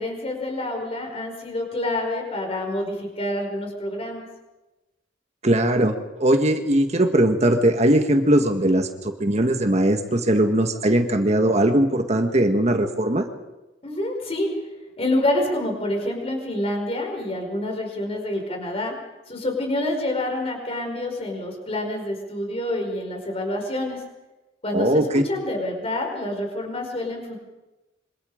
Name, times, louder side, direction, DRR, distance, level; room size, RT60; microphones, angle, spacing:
voice 1, 0.0-4.2 13.8-14.5 15.0-19.0 19.3-24.0 24.6-27.4, left 1 dB, 30° left, 2 dB, 5.5 m, -27 dB
voice 2, 5.4-5.9 6.2-13.2 24.7-25.2, right 1 dB, 35° right, 5 dB, 1.6 m, -20 dB
26.5 x 25.0 x 5.1 m, 1.0 s
head